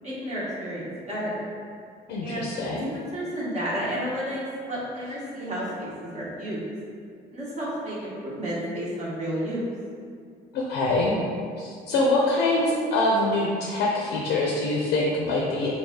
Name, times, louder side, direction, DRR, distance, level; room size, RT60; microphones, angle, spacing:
voice 1, 0.0-1.5 2.2-2.5 2.9-4.4 4.6-6.6 7.3-9.6, equal, 45° right, -8 dB, 1.0 m, -31 dB
voice 2, 2.1-2.9 10.5-11.2 11.6-15.7, left 2 dB, 85° left, -3 dB, 0.5 m, -24 dB
3.3 x 2.3 x 3.5 m, 2.3 s
cardioid pair, 110°, 17 cm